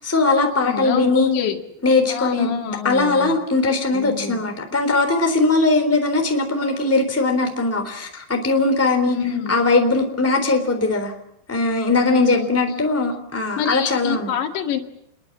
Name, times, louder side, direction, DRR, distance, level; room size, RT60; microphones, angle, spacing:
voice 1, 0.0-1.4 1.8-11.1 11.5-14.3, left 3 dB, 5° left, 5 dB, 3.0 m, -20 dB
voice 2, 0.6-1.6 2.1-3.4 3.9-4.4 9.1-9.5 12.0-12.5 13.6-14.8, left 9 dB, 75° left, 4 dB, 4.3 m, -27 dB
29.0 x 22.0 x 7.4 m, 0.77 s
omnidirectional pair, 5.2 m